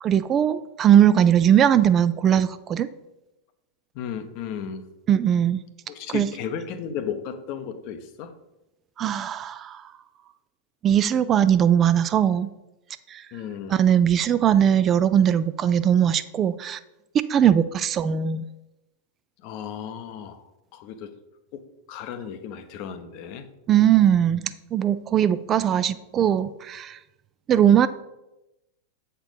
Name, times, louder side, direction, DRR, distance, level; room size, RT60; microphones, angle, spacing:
voice 1, 0.0-2.9 5.1-5.6 6.1-6.3 9.0-9.8 10.8-12.5 13.1-13.2 13.7-16.8 17.1-18.4 23.7-27.0 27.5-27.9, right 9 dB, 30° right, 14 dB, 0.3 m, -20 dB
voice 2, 3.9-4.9 5.9-8.3 13.3-13.9 19.4-21.2 21.5-23.5, left 8 dB, 45° left, 10 dB, 0.7 m, -35 dB
7.9 x 4.5 x 5.0 m, 0.95 s
figure-of-eight pair, 90°, 0 cm